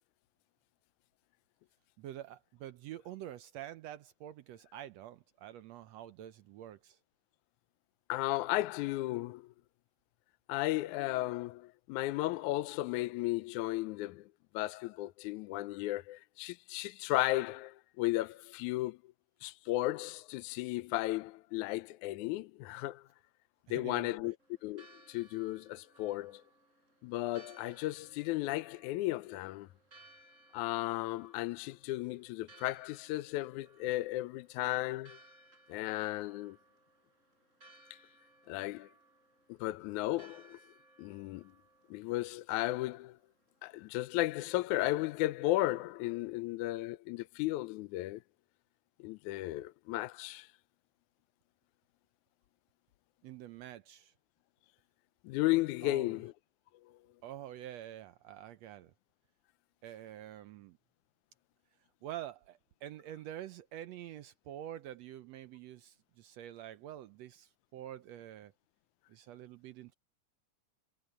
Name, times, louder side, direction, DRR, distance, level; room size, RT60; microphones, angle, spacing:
voice 1, 2.0-7.0 23.7-24.3 53.2-54.1 55.8-56.1 57.2-58.9 59.8-60.8 62.0-68.5 69.1-69.9, right 12 dB, 75° right, 1.7 m, -47 dB
voice 2, 8.1-9.4 10.5-14.2 14.5-19.0 19.4-23.0 23.7-24.3 24.6-26.4 27.0-29.7 30.5-35.2 35.7-36.6 38.5-38.9 39.6-40.6 41.0-41.4 41.9-43.2 43.6-48.2 49.0-50.5 55.3-56.3, left 17 dB, 80° left, 2.0 m, -34 dB
Church bell, 24.4-43.8, right 2 dB, 20° right, 5.9 m, -63 dB
omnidirectional pair, 3.5 m